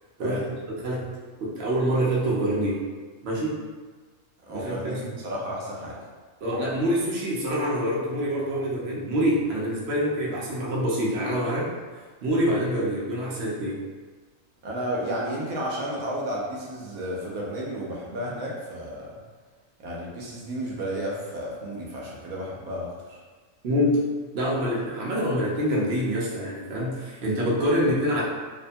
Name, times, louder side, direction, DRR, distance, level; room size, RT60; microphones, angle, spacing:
voice 1, 0.2-1.1 1.4-2.8 3.2-3.6 4.5-5.0 6.4-11.7 12.2-13.8 23.6-24.0 24.3-28.2, equal, 60° right, -5 dB, 0.8 m, -26 dB
voice 2, 4.4-6.0 14.6-19.1 19.8-23.2, equal, 80° right, -4 dB, 1.1 m, -32 dB
2.8 x 2.1 x 2.6 m, 1.4 s
omnidirectional pair, 1.4 m